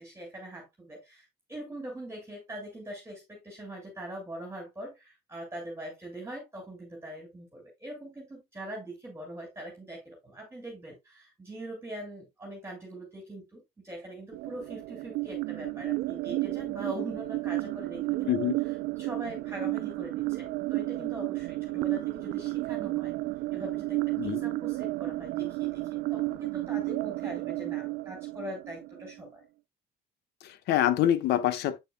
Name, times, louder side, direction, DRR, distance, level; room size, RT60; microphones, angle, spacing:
voice 1, 0.0-23.1 23.5-29.4, right 1 dB, 15° right, 2.4 m, -42 dB
sound 1, 14.3-29.3, right 20 dB, 80° right, 0.5 m, -32 dB
voice 2, 30.4-31.8, left 11 dB, 80° left, 0.9 m, -26 dB
7.9 x 6.8 x 2.2 m
cardioid pair, 110°, 17 cm